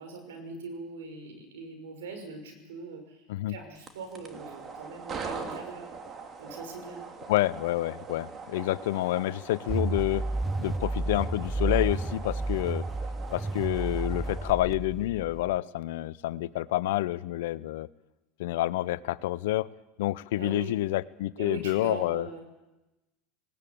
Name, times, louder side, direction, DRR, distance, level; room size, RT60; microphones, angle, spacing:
voice 1, 0.0-5.9 6.4-7.0 20.4-20.8 21.4-22.4, right 4 dB, 80° right, 5 dB, 5.8 m, -41 dB
sound 1, 3.7-14.5, right 5 dB, 35° right, 2.8 m, -42 dB
voice 2, 7.3-10.3 10.6-12.9 13.3-17.9 18.4-19.7 20.0-22.3, left 16 dB, 75° left, 18 dB, 0.7 m, -28 dB
sound 2, 9.7-15.6, right 2 dB, 10° right, 0.6 m, -31 dB
19.5 x 18.0 x 8.5 m, 1.0 s
hypercardioid pair, 90°, 0 cm